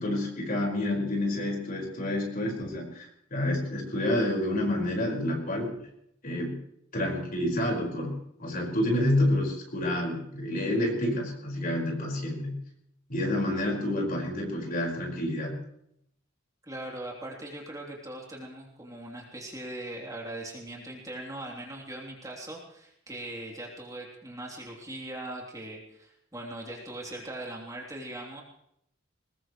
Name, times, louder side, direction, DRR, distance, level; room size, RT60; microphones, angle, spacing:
voice 1, 0.0-5.9 6.2-6.6 6.9-12.6 13.1-15.6, left 1 dB, 45° left, 0 dB, 5.1 m, -29 dB
voice 2, 16.6-28.4, right 1 dB, 15° right, -2 dB, 3.3 m, -40 dB
21.5 x 20.5 x 3.2 m, 0.74 s
head